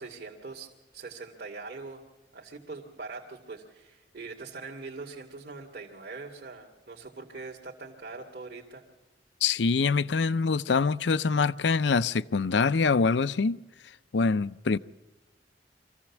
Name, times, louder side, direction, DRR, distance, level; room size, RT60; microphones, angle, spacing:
voice 1, 0.0-2.0 2.3-8.8, right 3 dB, 60° right, 2.3 m, -42 dB
voice 2, 9.4-13.6 14.1-14.8, left 4 dB, 80° left, 0.5 m, -24 dB
24.5 x 15.5 x 7.2 m
head